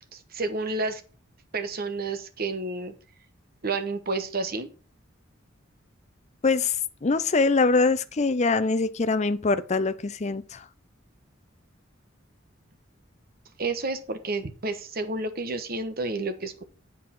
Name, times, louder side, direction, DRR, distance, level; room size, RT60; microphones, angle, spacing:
voice 1, 0.1-1.0 1.5-2.9 3.6-4.7 13.6-16.6, right 3 dB, 50° right, 1.1 m, -30 dB
voice 2, 6.4-6.8 7.0-10.6, left 3 dB, 35° left, 0.5 m, -23 dB
8.2 x 4.8 x 5.8 m
head